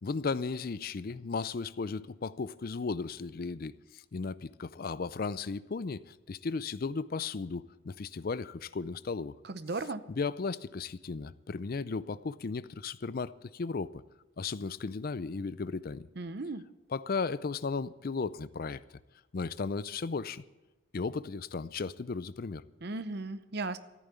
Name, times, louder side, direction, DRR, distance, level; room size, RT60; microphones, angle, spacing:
voice 1, 0.0-9.4 10.1-14.0 14.4-16.1 16.9-18.8 19.3-20.4 20.9-22.6, left 4 dB, 45° left, 0.4 m, -35 dB
voice 2, 9.5-10.0 16.2-16.6 22.8-23.8, right 3 dB, 50° right, 0.7 m, -36 dB
14.0 x 9.2 x 8.3 m
head